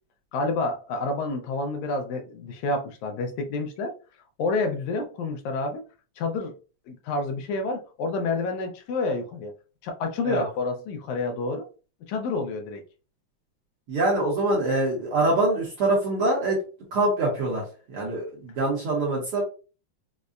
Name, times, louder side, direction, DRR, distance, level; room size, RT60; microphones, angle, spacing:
voice 1, 0.3-3.9 4.4-5.8 6.2-6.5 6.9-9.5 9.8-11.7 12.1-12.8, left 3 dB, 80° left, 1.9 m, -29 dB
voice 2, 13.9-16.6 16.9-19.4, right 2 dB, 65° right, 1.4 m, -24 dB
5.2 x 2.1 x 2.4 m
omnidirectional pair, 3.5 m